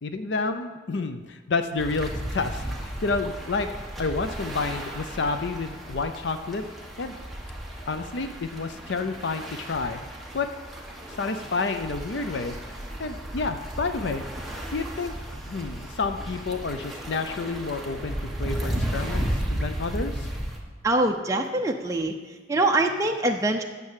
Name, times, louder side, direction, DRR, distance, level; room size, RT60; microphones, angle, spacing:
voice 1, 0.0-3.7 4.0-6.6 7.0-7.1 7.9-10.0 10.3-10.5 11.2-12.5 13.0-14.2 14.7-15.1 15.5-20.3, left 4 dB, 65° left, 9 dB, 0.5 m, -29 dB
sound 1, 1.8-20.6, right 1 dB, ahead, 1.2 m, -34 dB
voice 2, 20.8-22.1 22.5-23.6, right 2 dB, 15° right, 2 dB, 0.6 m, -23 dB
9.5 x 6.8 x 7.4 m, 1.4 s
head